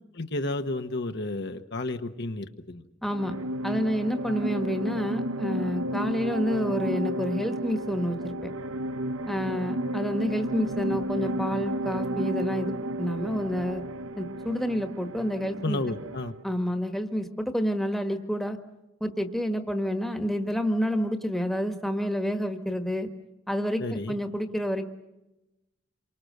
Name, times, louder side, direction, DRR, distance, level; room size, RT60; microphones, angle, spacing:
voice 1, 0.1-2.8 15.6-16.3 23.8-24.1, left 2 dB, 55° left, 6 dB, 1.2 m, -32 dB
voice 2, 3.0-3.3 3.6-8.5 9.3-13.8 14.2-15.8 16.4-18.6 19.0-23.1 23.5-24.9, equal, ahead, 6 dB, 1.4 m, -29 dB
sound 1, 3.1-16.4, right 1 dB, 85° right, 0.9 m, -32 dB
28.0 x 24.0 x 6.6 m, 0.97 s
head